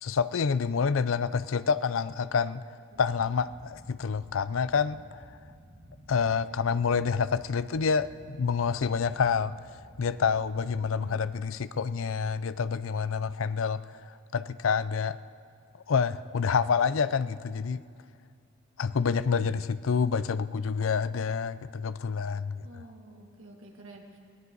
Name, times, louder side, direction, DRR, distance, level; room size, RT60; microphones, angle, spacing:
voice 1, 0.0-2.6 3.0-5.2 6.1-15.2 15.9-17.8 18.8-22.8, left 6 dB, 75° left, 15 dB, 0.5 m, -28 dB
sound 1, 2.9-10.9, equal, 55° right, 1.9 m, -53 dB
voice 2, 6.5-7.0 10.9-11.2 18.8-19.5 22.6-24.2, right 1 dB, 80° right, 0 dB, 2.3 m, -51 dB
20.5 x 18.0 x 4.0 m, 2.3 s
head